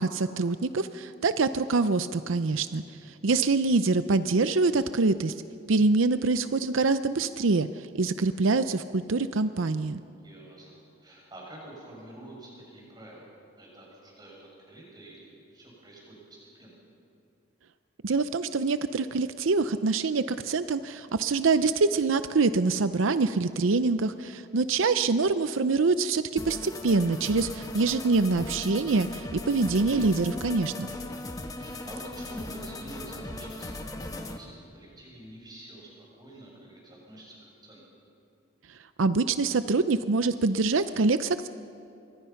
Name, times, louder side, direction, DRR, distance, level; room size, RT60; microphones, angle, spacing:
voice 1, 0.0-2.8 3.2-5.3 5.7-7.7 7.9-10.0 18.0-30.9 39.0-41.5, right 3 dB, 90° right, 12 dB, 0.6 m, -25 dB
voice 2, 10.1-13.3 13.6-16.8 30.6-31.2 31.5-37.8, right 1 dB, 20° right, -3 dB, 7.0 m, -47 dB
sound 1, 26.4-34.4, left 2 dB, 20° left, 1.3 m, -38 dB
27.0 x 23.0 x 5.8 m, 2.5 s
head